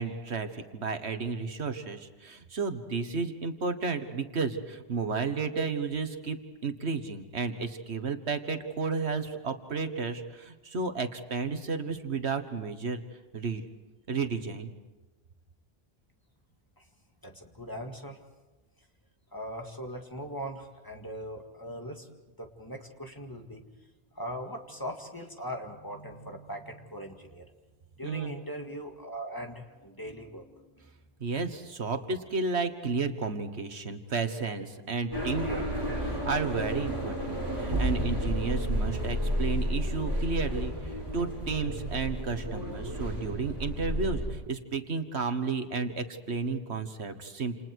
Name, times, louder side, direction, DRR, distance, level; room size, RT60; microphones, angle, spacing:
voice 1, 0.0-13.0 13.3-13.6 14.1-14.7 28.0-28.3 31.2-47.6, right 4 dB, 80° right, 8 dB, 1.7 m, -32 dB
voice 2, 17.2-18.2 19.3-23.7 24.1-27.5 28.0-31.0, equal, 20° left, 3 dB, 2.0 m, -40 dB
sound 1, 35.1-44.3, equal, 20° right, 6.7 m, -31 dB
29.0 x 28.5 x 4.7 m, 1.2 s
omnidirectional pair, 1.1 m